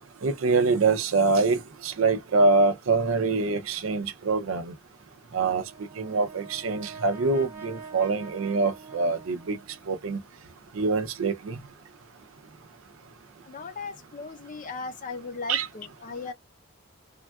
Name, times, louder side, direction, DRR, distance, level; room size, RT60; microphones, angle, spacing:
voice 1, 0.2-4.7 5.3-5.6 6.0-9.6 9.9-10.2 10.7-11.6 15.5-15.7, right 3 dB, 80° right, 0.5 m, -24 dB
Brass instrument, 5.5-9.9, right 5 dB, 10° right, 0.7 m, -45 dB
voice 2, 13.5-16.3, left 4 dB, 40° left, 0.5 m, -37 dB
3.5 x 2.2 x 2.3 m
head